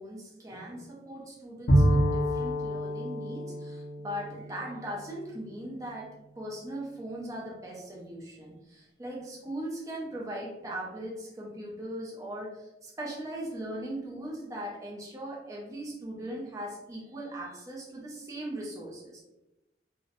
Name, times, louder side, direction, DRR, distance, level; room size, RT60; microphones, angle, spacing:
voice 1, 0.0-19.2, right 1 dB, 20° right, -3 dB, 0.4 m, -39 dB
Bowed string instrument, 1.7-5.4, equal, 70° left, 0.6 m, -27 dB
2.6 x 2.0 x 2.5 m, 0.96 s
head